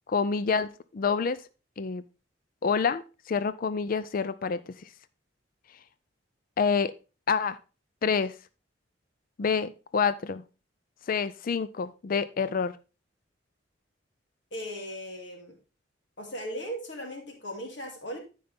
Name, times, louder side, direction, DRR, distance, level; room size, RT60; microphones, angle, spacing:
voice 1, 0.1-1.4 1.8-2.0 2.6-4.9 6.6-6.9 7.3-7.6 8.0-8.4 9.4-10.4 11.1-12.8, left 5 dB, 50° left, 15 dB, 0.4 m, -27 dB
voice 2, 14.5-15.6 16.2-18.2, equal, 75° left, 1 dB, 2.6 m, -37 dB
12.5 x 5.5 x 3.5 m, 0.32 s
head